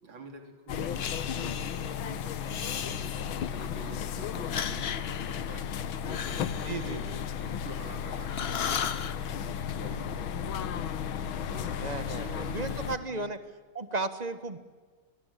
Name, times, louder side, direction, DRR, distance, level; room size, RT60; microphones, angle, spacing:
voice 1, 0.0-1.0 1.3-3.1 3.5-5.7 6.0-6.9 7.4-10.8 11.5-11.8 12.2-13.3, right 3 dB, 75° right, 5 dB, 3.9 m, -47 dB
sound 1, 0.7-13.0, left 8 dB, 85° left, 1.8 m, -34 dB
Breathing, 1.0-2.0 2.4-3.7 4.3-7.9 8.3-9.2, left 8 dB, 55° left, 0.6 m, -37 dB
voice 2, 6.6-7.2 11.8-13.4 13.7-14.6, right 3 dB, 25° right, 11 dB, 1.3 m, -35 dB
24.5 x 20.5 x 8.5 m, 1.4 s
omnidirectional pair, 2.2 m